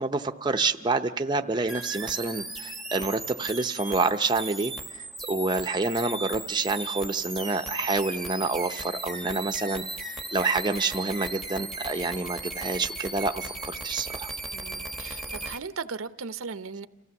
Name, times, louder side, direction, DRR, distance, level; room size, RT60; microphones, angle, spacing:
voice 1, 0.0-14.3, right 3 dB, 20° right, 0.6 m, -28 dB
sound 1, 1.7-15.6, right 2 dB, ahead, 0.9 m, -37 dB
voice 2, 14.5-16.9, right 5 dB, 80° right, 0.7 m, -37 dB
28.0 x 15.0 x 7.1 m
head